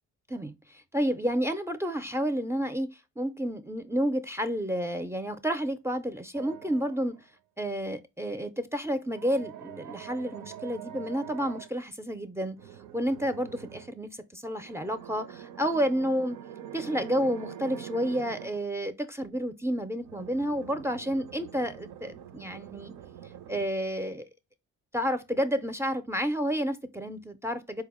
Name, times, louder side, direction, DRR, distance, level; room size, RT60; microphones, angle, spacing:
voice 1, 0.3-2.9 3.2-7.2 7.6-12.6 12.9-16.4 16.7-22.9 23.5-24.3 24.9-27.8, equal, 10° right, 0.4 m, -30 dB
sound 1, 6.3-7.2 9.0-11.7 12.6-13.9 14.5-18.6 20.0-23.7, right 10 dB, 90° right, 0.5 m, -45 dB
4.3 x 2.0 x 3.5 m
cardioid pair, 90°, 30 cm